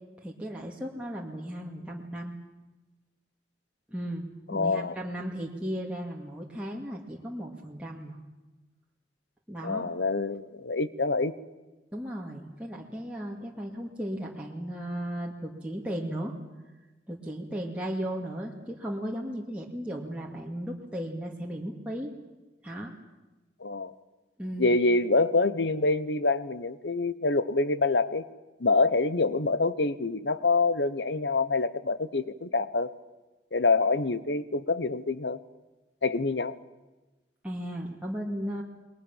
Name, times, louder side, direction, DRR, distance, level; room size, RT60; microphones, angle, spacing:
voice 1, 0.2-2.3 3.9-8.2 9.5-9.9 11.9-16.3 17.1-22.1 22.6-22.9 24.4-24.8 37.4-38.6, equal, 5° right, -3 dB, 2.3 m, -35 dB
voice 2, 4.5-5.0 9.6-11.3 23.6-23.9 24.6-28.3 28.6-32.9 33.5-35.4 36.0-36.6, left 3 dB, 85° left, 15 dB, 1.1 m, -26 dB
29.0 x 21.5 x 7.4 m, 1.1 s
head